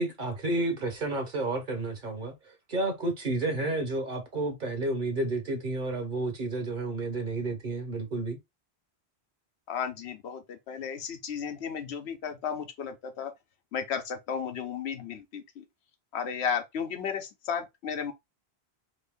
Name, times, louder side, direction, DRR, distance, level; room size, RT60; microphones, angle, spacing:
voice 1, 0.0-8.4, right 2 dB, 50° right, 0.9 m, -31 dB
voice 2, 9.7-13.3 13.7-15.6 16.1-18.1, left 7 dB, 90° left, 1.0 m, -34 dB
3.1 x 2.7 x 3.4 m
omnidirectional pair, 1.1 m